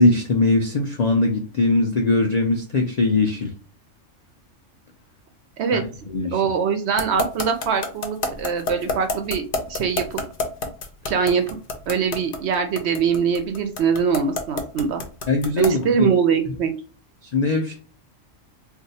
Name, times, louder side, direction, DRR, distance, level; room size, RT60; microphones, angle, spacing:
voice 1, 0.0-3.5 5.7-5.8 6.1-6.5 15.3-16.1 17.2-17.8, left 2 dB, 75° left, 2 dB, 0.3 m, -20 dB
voice 2, 6.3-10.2 11.1-11.4 11.9-15.0 15.6-16.7, right 6 dB, 65° right, 7 dB, 0.7 m, -23 dB
sound 1, 7.0-15.8, left 3 dB, 50° left, 0.7 m, -27 dB
2.6 x 2.3 x 4.0 m, 0.37 s
omnidirectional pair, 1.4 m